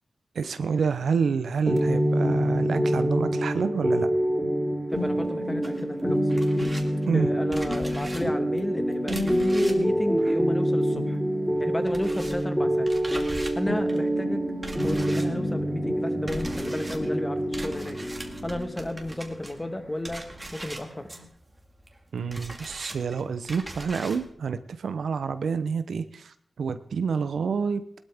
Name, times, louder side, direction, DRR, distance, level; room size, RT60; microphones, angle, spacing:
voice 1, 0.3-4.1 7.1-7.3 22.1-27.8, right 5 dB, 90° right, 11 dB, 0.7 m, -28 dB
sound 1, 1.7-21.2, equal, ahead, 3.9 m, -26 dB
voice 2, 4.9-6.3 7.1-11.2 11.6-12.9 13.5-14.4 14.8-18.0 18.4-20.2 20.5-21.1, left 1 dB, 20° left, 8 dB, 1.5 m, -33 dB
sound 2, 5.6-11.2 11.4-24.3, right 1 dB, 25° right, 2.0 m, -41 dB
18.0 x 12.5 x 3.6 m, 0.64 s
cardioid pair, 60°, 0 cm